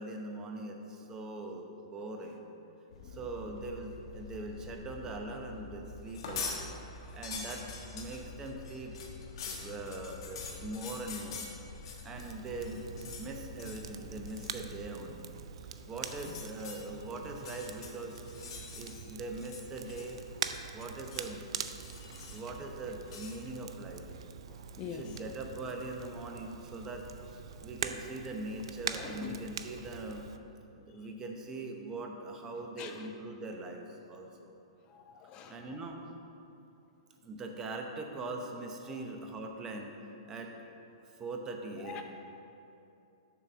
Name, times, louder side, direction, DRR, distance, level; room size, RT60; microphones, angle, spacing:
voice 1, 0.0-2.5 3.0-6.9 7.1-7.6 7.9-9.0 9.4-11.5 12.0-12.9 13.2-15.3 15.8-18.2 18.7-20.2 20.7-21.5 22.3-24.1 24.8-30.2 30.7-34.6 35.5-36.0 37.2-40.0 40.2-40.5 41.1-42.0, right 2 dB, 20° right, 2 dB, 0.7 m, -41 dB
sound 1, 2.9-14.8, left 2 dB, 80° left, 0.7 m, -49 dB
sound 2, 6.1-6.6 7.0-12.3 12.6-13.3 13.6-13.9 14.3-14.6 15.9-16.8 17.3-19.1 19.4-20.3 20.5-21.3 21.7-22.5 23.1-23.4, left 5 dB, 60° left, 1.2 m, -44 dB
Crackle, 12.1-30.4, right 7 dB, 70° right, 0.4 m, -44 dB
voice 2, 24.5-25.2 29.0-29.4 32.8-33.1 34.9-35.7 38.9-39.0 41.8-42.0, left 8 dB, 30° left, 5 dB, 0.4 m, -45 dB
6.9 x 4.1 x 6.0 m, 2.7 s
hypercardioid pair, 135°, 3 cm